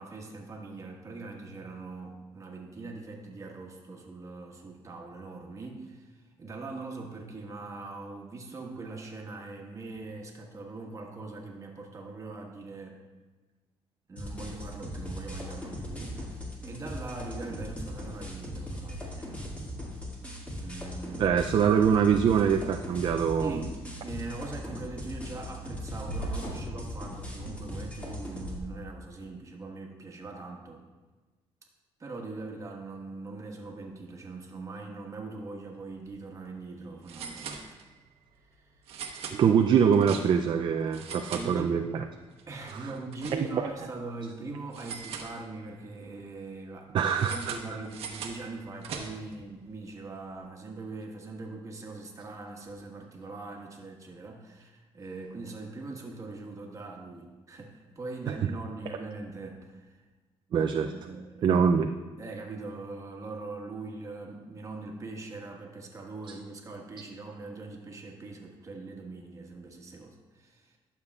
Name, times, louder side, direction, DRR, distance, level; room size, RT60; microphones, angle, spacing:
voice 1, 0.0-13.0 14.1-19.3 20.6-21.4 23.4-23.8 24.0-30.8 32.0-37.6 41.3-41.7 42.5-46.9 47.2-60.0 60.8-61.5 61.9-70.8, right 3 dB, 30° right, 0 dB, 1.4 m, -41 dB
sound 1, 14.2-28.6, equal, 15° left, 2.1 m, -39 dB
voice 2, 21.2-23.6 39.3-42.0 42.7-42.9 43.5-43.6 46.9-47.6 58.3-58.5 60.5-60.9 61.4-61.9, right 7 dB, 50° right, 5 dB, 0.4 m, -24 dB
sound 2, 26.0-26.8 27.3-28.2, right 1 dB, 85° left, 1.2 m, -38 dB
sound 3, 35.9-36.1 36.4-36.5 37.0-38.1 38.8-40.6 40.9-42.0 42.4-43.8 44.7-45.8 47.1-49.4, right 6 dB, 75° right, 1.0 m, -42 dB
11.5 x 6.9 x 2.4 m, 1.3 s
cardioid pair, 105°, 10 cm